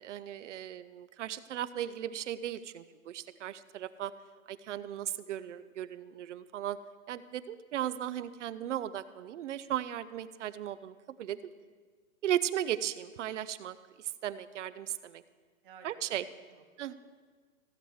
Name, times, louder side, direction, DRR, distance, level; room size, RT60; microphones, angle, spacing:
voice 1, 0.0-4.1 4.5-6.8 7.1-11.4 12.2-15.2 15.8-16.3 16.8-16.9, right 11 dB, 60° right, 15 dB, 0.6 m, -36 dB
voice 2, 11.3-11.6 15.6-16.9, right 6 dB, 40° right, 3 dB, 1.3 m, -58 dB
15.5 x 7.9 x 4.7 m, 1.5 s
hypercardioid pair, 170°, 42 cm